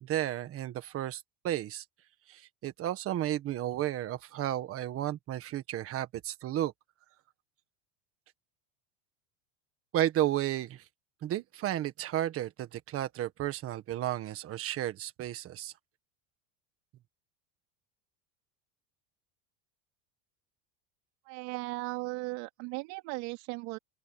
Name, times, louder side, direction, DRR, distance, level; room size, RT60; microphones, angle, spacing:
voice 1, 0.0-1.8 2.3-6.7 9.9-10.8 11.2-15.7, right 13 dB, 30° right, 1.6 m, -33 dB
voice 2, 21.3-23.8, right 26 dB, 60° right, 3.6 m, -37 dB
open air
cardioid pair, 165°, 44 cm